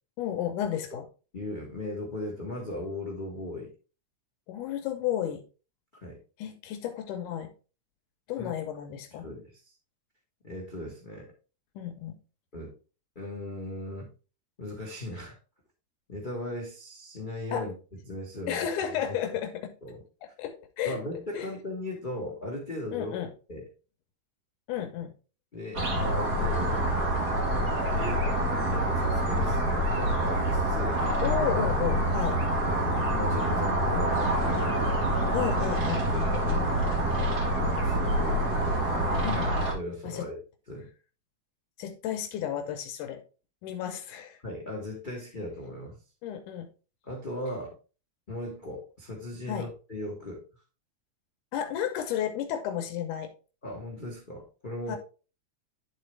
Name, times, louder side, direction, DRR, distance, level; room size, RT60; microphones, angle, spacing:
voice 1, 0.2-1.1 4.5-5.4 6.4-7.5 8.3-9.3 11.8-12.2 17.5-17.7 18.5-19.7 20.4-21.0 21.3-21.5 22.9-23.3 24.7-25.1 31.2-32.4 35.3-36.1 39.2-39.5 40.0-40.3 41.8-43.2 43.6-44.4 46.2-46.7 49.5-49.7 51.5-53.3 54.9-55.0, left 10 dB, 85° left, 2.4 m, -32 dB
voice 2, 1.3-3.7 6.0-6.2 8.4-8.5 9.1-9.6 10.4-11.3 12.5-12.7 13.1-14.1 14.6-15.4 16.1-17.7 18.1-18.7 19.1-19.2 19.8-20.0 20.8-23.1 23.5-23.6 25.5-26.8 27.9-28.2 28.6-31.0 32.3-32.4 33.1-34.8 36.1-36.5 37.2-38.6 39.7-40.4 40.7-40.9 44.4-46.0 47.0-47.7 48.3-50.4 53.6-55.0, left 1 dB, 40° left, 0.7 m, -38 dB
sound 1, 25.7-39.7, right 1 dB, 40° right, 1.8 m, -26 dB
11.0 x 4.0 x 3.3 m
omnidirectional pair, 3.5 m